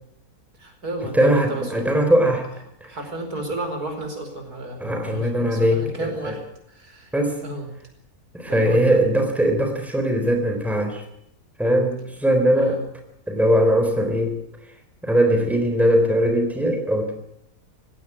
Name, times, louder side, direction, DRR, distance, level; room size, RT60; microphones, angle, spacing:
voice 1, 0.6-2.0 2.8-7.1 7.4-7.7 8.5-9.0 12.5-12.8, right 2 dB, 90° right, 5 dB, 5.4 m, -32 dB
voice 2, 1.1-2.5 2.8-2.9 4.8-6.3 7.1-7.4 8.3-11.0 11.6-12.8 13.3-14.4 15.0-17.1, equal, ahead, 5 dB, 3.7 m, -20 dB
18.5 x 17.0 x 9.9 m, 0.73 s
omnidirectional pair, 1.6 m